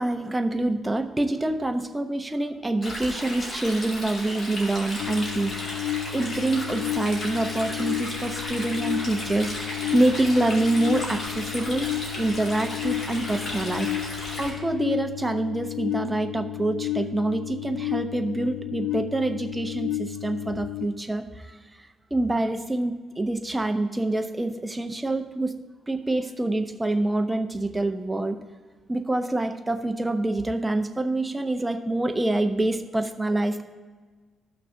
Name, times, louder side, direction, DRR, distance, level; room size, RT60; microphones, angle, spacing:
voice 1, 0.0-13.9 14.4-21.6 22.1-25.6 25.9-28.4 28.9-33.6, right 2 dB, 10° right, 6 dB, 0.6 m, -26 dB
Stream, 2.8-14.5, left 1 dB, 35° left, 2.3 m, -35 dB
sound 1, 5.0-20.9, left 15 dB, 70° left, 0.3 m, -32 dB
14.5 x 5.9 x 2.6 m, 1.4 s
cardioid pair, 135°, 0 cm